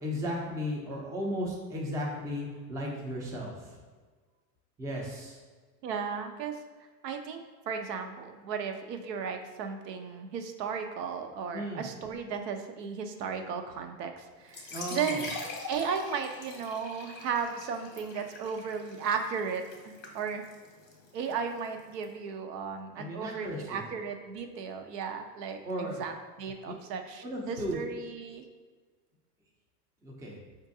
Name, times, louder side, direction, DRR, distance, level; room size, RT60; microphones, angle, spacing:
voice 1, 0.0-3.8 4.8-5.4 11.5-11.9 14.7-15.2 22.9-23.8 25.6-26.0 26.7-26.8 27.2-27.8 30.0-30.4, equal, 5° right, -2 dB, 0.4 m, -35 dB
voice 2, 5.8-6.6 7.0-7.4 7.7-15.4 15.7-20.4 21.1-28.4, right 6 dB, 80° right, 6 dB, 0.6 m, -35 dB
sound 1, 14.4-22.0, left 3 dB, 20° left, 0.7 m, -43 dB
4.5 x 2.6 x 2.6 m, 1.4 s
supercardioid pair, 110°, 49 cm